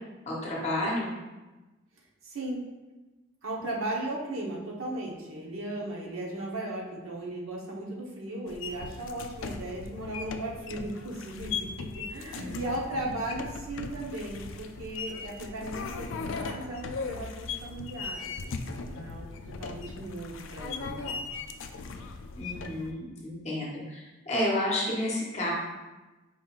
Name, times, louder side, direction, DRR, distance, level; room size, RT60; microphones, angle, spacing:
voice 1, 0.2-1.1 12.4-12.6 22.4-25.5, left 1 dB, 30° left, -4 dB, 0.9 m, -31 dB
voice 2, 2.2-2.6 3.4-21.2, right 1 dB, 80° right, -3 dB, 0.9 m, -37 dB
sound 1, 8.5-22.9, left 4 dB, 65° left, 0.3 m, -38 dB
4.9 x 3.8 x 2.4 m, 1.1 s
head